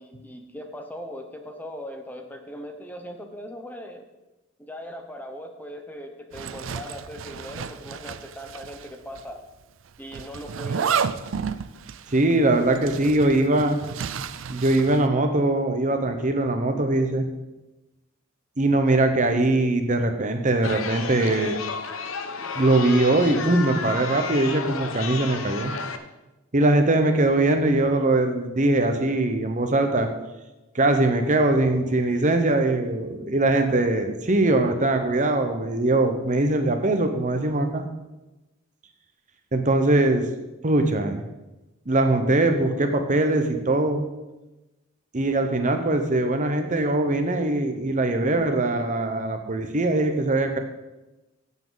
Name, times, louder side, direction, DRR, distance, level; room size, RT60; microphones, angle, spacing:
voice 1, 0.0-4.0 4.6-9.4 10.0-11.1 33.5-33.6, equal, 10° left, 4 dB, 0.9 m, -39 dB
Zipper (clothing), 6.3-8.9 9.2-9.3 10.1-15.1, right 6 dB, 70° right, 0.5 m, -31 dB
voice 2, 12.1-13.8 14.5-17.3 18.6-21.6 22.5-25.7 26.5-30.1 30.7-37.8 39.5-40.3 40.6-41.2 41.9-44.1 45.1-50.6, right 2 dB, 40° right, 6 dB, 1.0 m, -21 dB
Chatter, 20.6-26.0, left 5 dB, 90° left, 0.9 m, -32 dB
15.5 x 7.3 x 4.0 m, 1.0 s
head